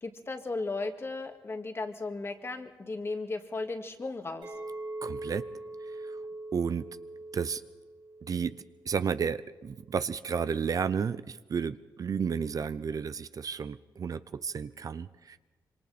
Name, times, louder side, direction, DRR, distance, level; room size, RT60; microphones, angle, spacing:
voice 1, 0.0-4.5, left 3 dB, 35° left, 6 dB, 2.0 m, -36 dB
Chink clink, 4.4-8.8 9.1-9.5, right 2 dB, 75° right, 4.1 m, -42 dB
voice 2, 5.0-5.5 6.0-6.2 6.5-6.9 7.3-7.6 8.2-15.4, right 6 dB, 50° right, 14 dB, 0.6 m, -32 dB
26.0 x 24.0 x 4.3 m, 1.3 s
cardioid pair, 95°, 7 cm